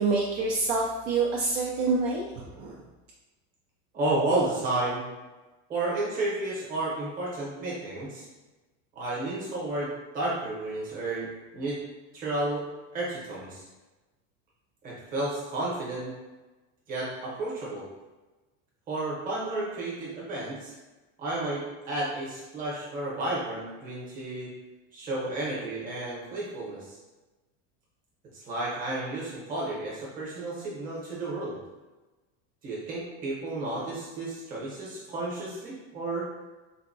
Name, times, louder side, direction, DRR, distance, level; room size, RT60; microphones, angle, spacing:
voice 1, 0.0-2.8, right 3 dB, 55° right, -3 dB, 0.4 m, -27 dB
voice 2, 3.9-5.0 5.7-8.2 8.9-9.9 10.1-11.3 11.5-11.8 12.1-12.6 12.9-13.6 14.8-16.1 16.9-17.9 18.9-20.7 21.2-24.5 24.9-27.0 28.3-31.6 32.6-36.3, right 2 dB, 25° right, -6 dB, 0.9 m, -32 dB
3.9 x 2.2 x 2.6 m, 1.2 s
cardioid pair, 175°, 35 cm